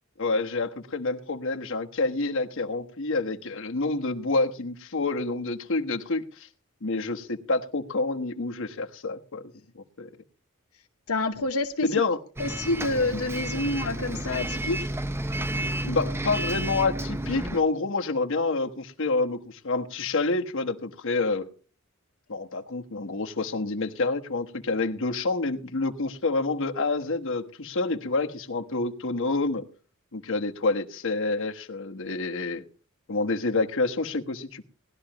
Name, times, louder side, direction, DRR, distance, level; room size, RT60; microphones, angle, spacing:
voice 1, 0.2-6.5 6.8-10.1 11.8-12.2 15.8-21.5 22.3-29.7 30.1-32.6 33.1-34.6, left 3 dB, 65° left, 1.3 m, -28 dB
voice 2, 11.1-11.9 12.4-14.9, left 2 dB, 80° left, 1.1 m, -28 dB
Bus, 12.4-17.6, right 1 dB, 10° right, 0.6 m, -31 dB
19.0 x 11.5 x 3.0 m
head